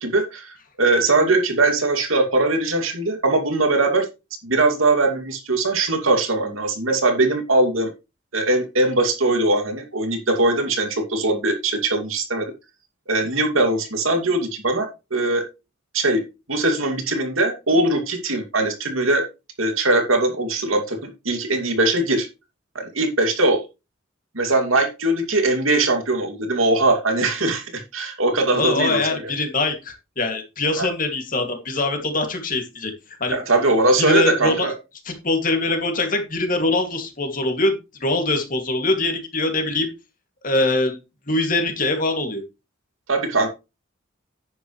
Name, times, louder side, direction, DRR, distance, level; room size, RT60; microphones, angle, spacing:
voice 1, 0.0-4.1 4.4-7.9 8.3-12.5 13.1-15.4 15.9-16.2 16.5-19.2 19.6-22.3 22.7-23.6 24.3-29.1 30.8-30.9 33.3-34.7 43.1-43.5, right 2 dB, 85° right, 4 dB, 2.6 m, -21 dB
voice 2, 28.5-32.9 33.2-33.4 34.0-34.7 35.0-39.9 40.4-41.0 41.3-42.4, left 2 dB, 40° left, 4 dB, 2.5 m, -23 dB
10.0 x 9.1 x 3.2 m, 0.27 s
head